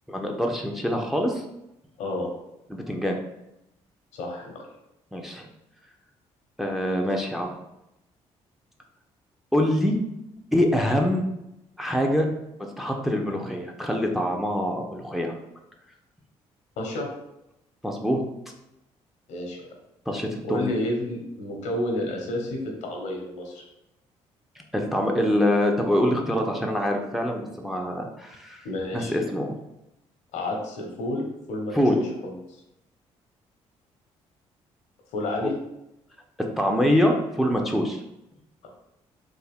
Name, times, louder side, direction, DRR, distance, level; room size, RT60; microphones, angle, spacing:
voice 1, 0.1-1.4 2.7-3.2 5.1-5.5 6.6-7.5 9.5-9.9 10.5-11.2 11.8-12.3 12.6-15.4 17.8-18.2 20.1-20.7 24.7-28.6 28.9-29.5 31.7-32.0 35.4-35.5 36.6-38.0, equal, ahead, 2 dB, 0.5 m, -24 dB
voice 2, 2.0-2.3 4.1-4.7 16.8-17.1 19.3-19.7 20.4-23.6 28.6-29.1 30.3-32.3 35.1-35.5, left 1 dB, 80° left, 1 dB, 0.9 m, -30 dB
3.4 x 2.1 x 3.5 m, 0.86 s
supercardioid pair, 75°, 12 cm